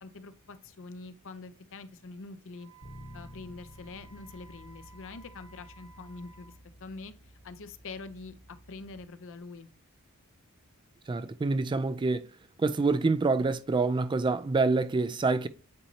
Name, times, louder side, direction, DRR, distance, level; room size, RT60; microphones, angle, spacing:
voice 1, 0.0-2.7 3.1-6.5 6.8-7.1 7.4-9.7, left 3 dB, 60° left, 0.7 m, -45 dB
Wind instrument woodwind instrument, 2.5-6.6, right 3 dB, 75° right, 2.7 m, -56 dB
Bass guitar, 2.8-9.1, equal, 35° left, 1.1 m, -52 dB
voice 2, 11.1-12.3 12.6-15.5, right 3 dB, 20° right, 0.3 m, -26 dB
8.7 x 4.1 x 2.8 m
head